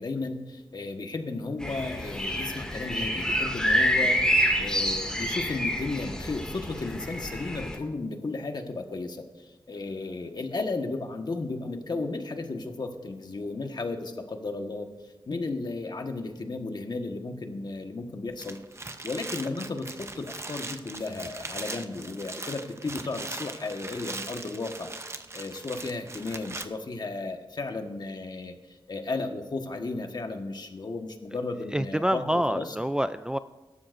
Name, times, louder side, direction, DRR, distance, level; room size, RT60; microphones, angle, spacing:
voice 1, 0.0-4.2 4.6-14.9 15.3-18.6 19.0-24.9 25.3-32.8, left 3 dB, 55° left, 4 dB, 1.4 m, -34 dB
sound 1, 1.6-7.8, equal, 10° left, 2.2 m, -27 dB
sound 2, 18.3-26.6, right 2 dB, 30° right, 0.7 m, -40 dB
voice 2, 31.7-33.4, equal, 10° right, 11 dB, 0.3 m, -27 dB
24.0 x 12.5 x 2.6 m, 1.1 s
wide cardioid pair, 110°, 9 cm